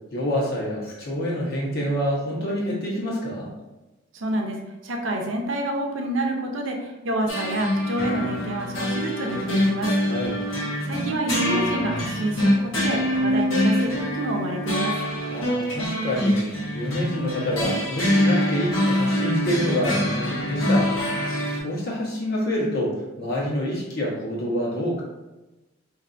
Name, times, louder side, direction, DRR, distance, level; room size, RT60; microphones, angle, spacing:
voice 1, 0.1-3.5 10.0-10.4 15.3-21.3 21.6-25.0, equal, 50° left, -4 dB, 1.1 m, -27 dB
voice 2, 4.1-9.9 10.9-14.9, right 1 dB, 70° right, 2 dB, 0.6 m, -28 dB
sound 1, 7.3-21.6, equal, 85° left, 1.1 m, -24 dB
4.5 x 2.6 x 2.5 m, 1.1 s
head